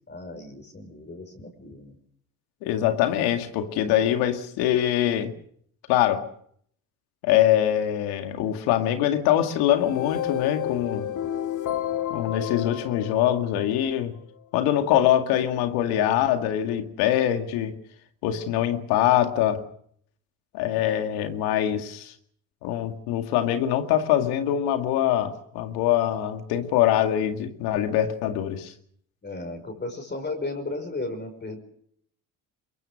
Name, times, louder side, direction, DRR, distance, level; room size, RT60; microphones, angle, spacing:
voice 1, 0.1-2.0 29.2-31.6, left 2 dB, 30° left, 5 dB, 5.5 m, -35 dB
voice 2, 2.6-5.3 5.9-6.2 7.2-11.1 12.1-14.2 14.5-17.8 18.2-19.6 20.5-22.1 22.6-28.7, left 11 dB, 80° left, 7 dB, 2.2 m, -23 dB
sound 1, 9.7-14.0, left 11 dB, 50° left, 1.6 m, -31 dB
22.5 x 22.5 x 6.5 m, 0.65 s
supercardioid pair, 70°, 37 cm